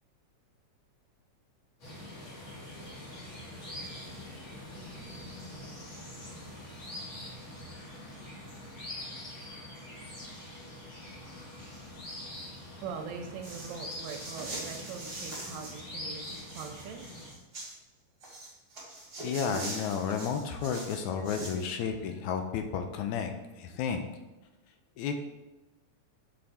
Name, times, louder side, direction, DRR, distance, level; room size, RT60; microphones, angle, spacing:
sound 1, 1.8-17.3, left 1 dB, 45° left, 2.4 m, -44 dB
voice 1, 12.8-17.1, right 6 dB, 75° right, 3 dB, 1.9 m, -42 dB
sound 2, 13.4-15.8 16.1-17.7 18.2-21.6, right 2 dB, 25° right, 1.6 m, -42 dB
voice 2, 19.2-24.0 25.0-25.1, left 7 dB, 80° left, 6 dB, 1.9 m, -32 dB
7.0 x 5.6 x 4.1 m, 1.1 s
omnidirectional pair, 3.6 m